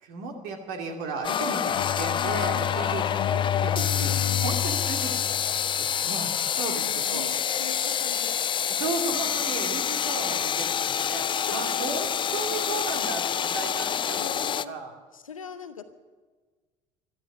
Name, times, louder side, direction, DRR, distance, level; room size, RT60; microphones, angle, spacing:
voice 1, 0.0-4.1 4.4-6.3 6.6-7.2 8.7-11.2 11.5-12.1 12.3-14.2 14.7-14.9, right 4 dB, 60° right, 2 dB, 2.8 m, -34 dB
sound 1, 1.2-14.7, left 8 dB, 30° left, 0.5 m, -27 dB
Bowed string instrument, 1.7-6.1, left 10 dB, 60° left, 0.9 m, -30 dB
voice 2, 3.3-3.6 4.1-4.7 6.5-8.4 11.3-11.9 14.1-14.7 15.1-15.9, left 5 dB, 85° left, 9 dB, 1.0 m, -41 dB
15.0 x 12.5 x 6.8 m, 1.4 s
figure-of-eight pair, 60°, 17 cm